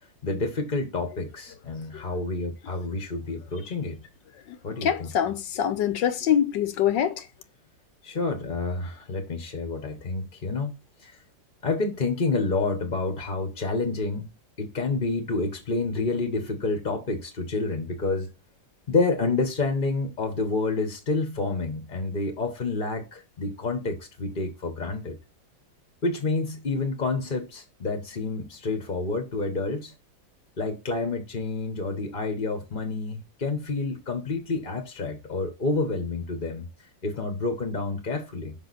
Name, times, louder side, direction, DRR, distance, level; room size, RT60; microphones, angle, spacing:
voice 1, 0.2-4.0 4.6-5.1 8.0-10.7 11.0-11.2 11.6-14.3 14.6-18.3 18.9-25.2 26.0-29.9 30.6-36.7 37.0-38.5, left 3 dB, 30° left, 1.0 m, -29 dB
voice 2, 4.7-7.3, left 9 dB, 75° left, 1.4 m, -24 dB
5.6 x 5.6 x 4.1 m
omnidirectional pair, 2.0 m